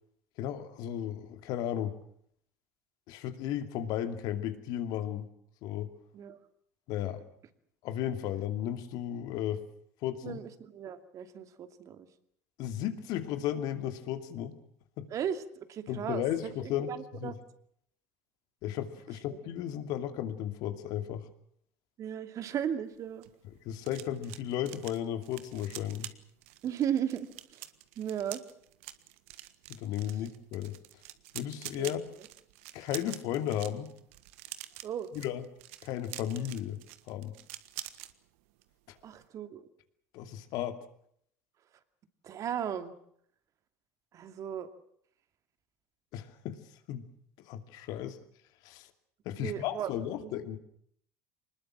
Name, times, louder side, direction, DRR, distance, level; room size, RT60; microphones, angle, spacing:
voice 1, 0.4-2.0 3.1-5.3 5.6-5.9 6.9-7.2 7.8-9.6 10.0-10.4 12.6-14.5 15.0-15.1 15.9-17.4 18.6-21.3 23.6-26.1 29.7-30.7 31.3-32.0 32.7-33.9 35.1-35.4 35.8-36.8 37.1-37.3 38.9-39.0 40.1-40.8 46.1-46.6 46.9-47.1 47.5-48.2 48.6-48.9 49.2-50.6, left 11 dB, 60° left, 9 dB, 2.7 m, -34 dB
voice 2, 10.2-12.1 15.1-17.3 22.0-23.2 26.6-27.7 28.0-28.4 31.8-31.9 34.8-35.1 39.0-39.7 42.2-42.9 44.1-44.7 49.4-49.9 50.2-50.3, right 9 dB, 45° right, 10 dB, 2.6 m, -36 dB
sound 1, 22.9-38.1 38.5-38.7 39.0-39.3, right 16 dB, 70° right, 1.5 m, -47 dB
25.0 x 20.5 x 7.5 m, 0.67 s
hypercardioid pair, 75°, 7 cm